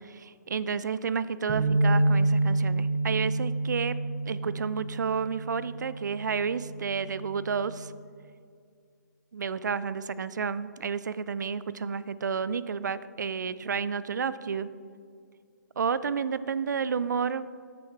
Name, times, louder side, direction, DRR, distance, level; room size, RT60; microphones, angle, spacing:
voice 1, 0.2-4.0 4.3-7.9 9.3-14.7 15.8-17.5, right 6 dB, 75° right, 16 dB, 0.4 m, -31 dB
sound 1, 1.5-7.7, right 2 dB, 40° right, 0.9 m, -28 dB
9.4 x 6.9 x 3.2 m, 2.2 s
figure-of-eight pair, 130°, 10 cm